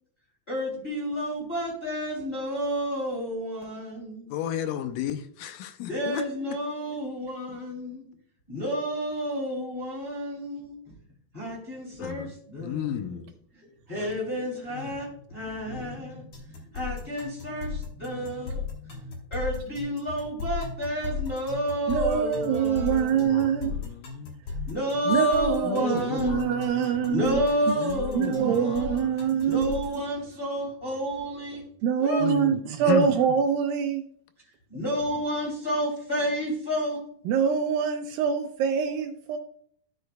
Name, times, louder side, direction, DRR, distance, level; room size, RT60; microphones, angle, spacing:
voice 1, 0.5-4.3 5.9-8.0 8.5-10.8 11.3-13.1 13.9-19.0 19.3-23.2 24.7-26.5 27.1-29.0 29.4-31.6 32.0-32.3 34.7-37.0, equal, 15° left, 2.6 m, -30 dB
voice 2, 4.3-6.3 12.0-13.3 14.7-15.0 15.6-15.9 23.1-24.4 25.6-27.3 27.7-29.3 32.2-33.2, left 9 dB, 80° left, 2.1 m, -34 dB
sound 1, 16.3-30.0, left 5 dB, 55° left, 1.6 m, -35 dB
voice 3, 21.9-23.8 24.5-24.7 25.1-27.4 28.1-30.0 31.8-34.0 37.3-39.4, right 7 dB, 85° right, 2.3 m, -25 dB
13.0 x 6.5 x 2.2 m
omnidirectional pair, 4.1 m